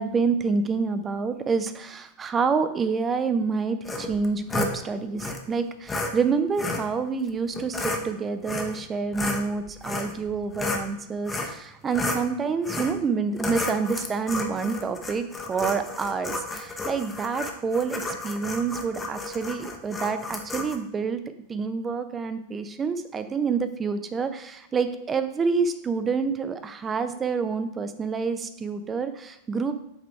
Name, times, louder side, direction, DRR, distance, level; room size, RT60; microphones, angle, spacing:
voice 1, 0.0-21.2 21.5-29.8, right 5 dB, 20° right, 10 dB, 0.6 m, -28 dB
sound 1, 3.8-4.7 5.2-5.4 5.9-6.1 6.6-6.9 7.5-8.0 8.4-8.8 9.1-10.9 11.3-11.6 11.9-12.2 12.6-13.0 13.4-20.8, left 2 dB, 15° left, 0.9 m, -32 dB
8.0 x 3.8 x 4.6 m, 0.81 s
figure-of-eight pair, 90°, 0 cm